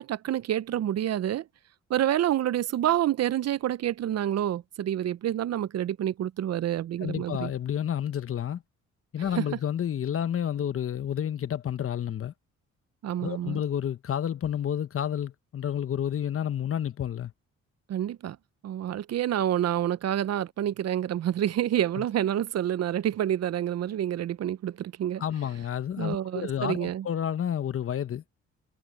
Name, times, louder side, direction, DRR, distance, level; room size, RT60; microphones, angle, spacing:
voice 1, 0.0-1.5 1.9-7.5 9.4-9.5 13.0-13.6 17.9-18.4 18.6-25.2 26.0-27.1, right 11 dB, 55° right, 0.7 m, -28 dB
voice 2, 7.0-8.6 9.1-12.3 13.2-17.3 22.0-22.1 25.2-28.2, left 9 dB, 45° left, 1.0 m, -30 dB
cardioid pair, 90°, 30 cm